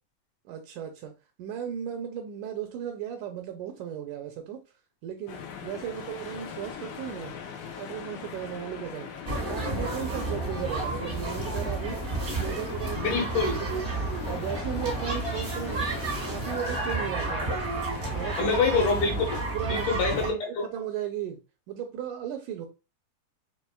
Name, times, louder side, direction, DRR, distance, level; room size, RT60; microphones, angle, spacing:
voice 1, 0.5-1.1 1.4-4.6 5.0-7.3 7.8-9.1 9.5-13.3 13.6-13.7 14.3-15.9 16.2-17.6 18.1-18.6 18.9-19.0 19.5-19.9 20.3-21.4 21.7-22.7, right 9 dB, 80° right, 1.9 m, -36 dB
sound 1, 5.3-19.4, left 7 dB, 90° left, 2.6 m, -41 dB
sound 2, 9.2-20.3, right 2 dB, 50° right, 0.7 m, -31 dB
voice 2, 13.0-13.6 18.4-19.4 19.7-20.6, left 4 dB, 70° left, 2.2 m, -26 dB
6.1 x 3.1 x 2.2 m
omnidirectional pair, 3.9 m